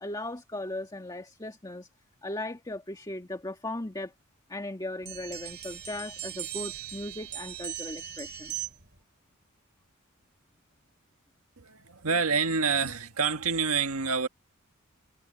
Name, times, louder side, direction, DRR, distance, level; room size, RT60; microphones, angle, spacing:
voice 1, 0.0-1.9 2.2-4.1 4.5-8.5, left 1 dB, 20° left, 1.9 m, -37 dB
sound 1, 5.0-9.0, right 11 dB, 50° right, 3.4 m, -39 dB
voice 2, 11.6-14.3, right 5 dB, 75° right, 1.7 m, -27 dB
head